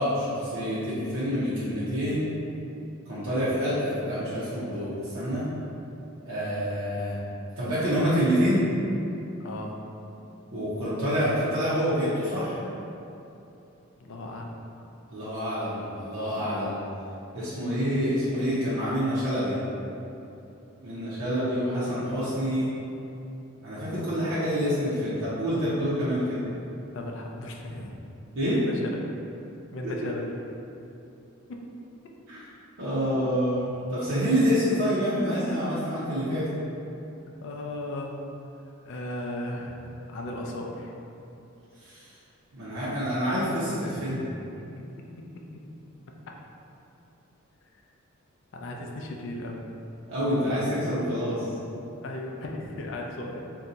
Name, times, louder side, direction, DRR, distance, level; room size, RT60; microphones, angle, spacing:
voice 1, 0.0-2.3 3.1-5.5 6.3-7.2 7.6-8.7 10.5-12.6 15.1-16.8 17.3-19.6 20.8-22.7 23.6-26.4 28.3-28.6 29.8-29.9 32.3-32.4 32.8-36.5 41.8-42.1 42.5-44.2 50.1-51.5, equal, 70° right, -11 dB, 0.6 m, -27 dB
voice 2, 9.4-9.8 14.0-14.5 26.9-28.0 28.5-29.0 29.7-30.3 31.5-31.7 37.4-38.2 38.8-40.9 44.2-44.3 44.6-44.7 45.5-45.6 48.5-49.7 52.0-53.4, left 1 dB, 60° left, 0 dB, 0.4 m, -36 dB
2.6 x 2.2 x 3.9 m, 2.8 s
head